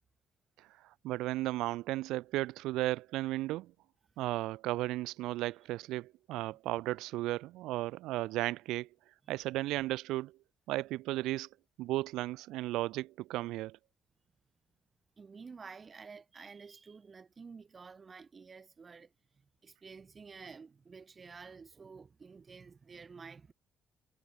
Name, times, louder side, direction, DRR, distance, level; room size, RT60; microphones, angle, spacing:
voice 1, 1.0-3.7 4.2-8.9 9.3-10.3 10.7-11.5 11.8-13.8, right 17 dB, 90° right, 2.9 m, -34 dB
voice 2, 15.2-23.5, right 5 dB, 30° right, 5.9 m, -51 dB
cardioid pair, 130°, 0 cm